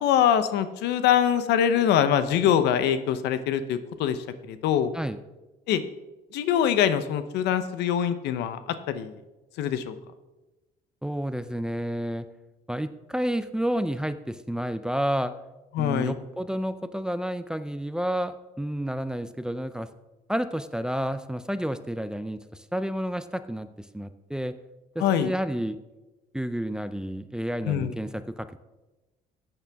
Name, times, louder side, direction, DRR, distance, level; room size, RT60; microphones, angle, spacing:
voice 1, 0.0-4.9 5.7-5.8 6.3-8.6 8.9-9.2 9.6-9.9 15.7-16.1 25.0-25.3 27.7-27.9, left 9 dB, 85° left, 12 dB, 0.8 m, -24 dB
voice 2, 11.0-12.3 12.7-15.3 15.8-19.9 20.3-24.5 25.0-25.8 26.3-28.6, equal, 5° right, 11 dB, 0.5 m, -30 dB
14.0 x 8.7 x 3.5 m, 1.1 s
cardioid pair, 110°, 17 cm